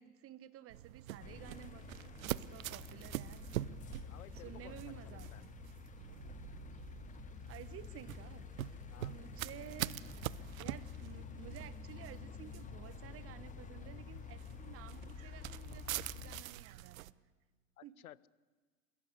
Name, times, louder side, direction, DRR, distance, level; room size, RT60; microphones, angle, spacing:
voice 1, 0.0-1.9 2.2-3.4 4.4-5.5 7.5-8.5 9.0-10.0 10.6-17.1 17.8-18.0, right 12 dB, 30° right, 15 dB, 1.4 m, -53 dB
sound 1, 0.7-17.1, right 14 dB, 70° right, 0.8 m, -45 dB
sound 2, 1.2-16.4, left 9 dB, 20° left, 0.9 m, -50 dB
voice 2, 4.1-5.4 8.9-9.1 17.8-18.3, left 12 dB, 80° left, 21 dB, 0.9 m, -56 dB
sound 3, 5.9-9.1, right 13 dB, 55° right, 1.1 m, -58 dB
28.5 x 16.0 x 8.2 m, 1.4 s
hypercardioid pair, 100°, 42 cm